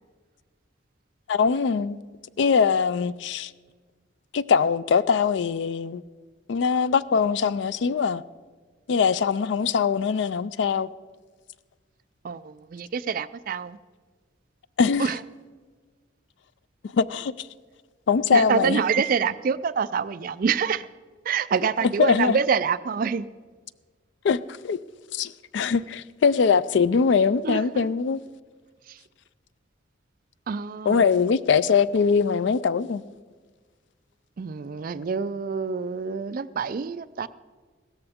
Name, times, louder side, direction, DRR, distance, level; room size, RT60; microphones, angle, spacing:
voice 1, 1.3-2.0 2.4-3.5 4.3-6.0 6.5-8.2 8.9-10.9 14.8-15.1 16.9-17.5 18.1-18.8 21.8-22.4 24.2-24.8 25.1-28.2 30.9-33.0, left 6 dB, 60° left, 0.3 m, -22 dB
voice 2, 12.2-13.8 15.0-15.2 18.3-20.9 21.3-23.3 27.4-27.9 28.9-29.0 30.5-31.1 34.4-37.3, right 6 dB, 45° right, 0.3 m, -26 dB
16.5 x 13.5 x 3.6 m
head